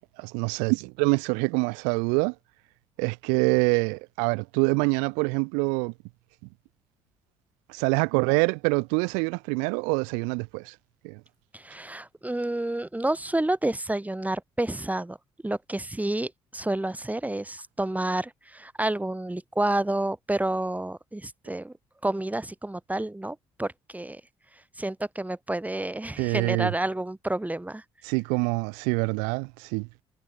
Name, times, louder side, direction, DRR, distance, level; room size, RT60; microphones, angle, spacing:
voice 1, 0.2-2.3 3.0-5.9 7.7-10.7 11.0-11.2 26.2-26.7 28.0-30.0, right 37 dB, 90° right, 0.8 m, -25 dB
voice 2, 11.5-15.2 15.4-21.7 22.0-24.2 24.8-27.8, right 1 dB, 10° right, 5.0 m, -29 dB
supercardioid pair, 55°, 13 cm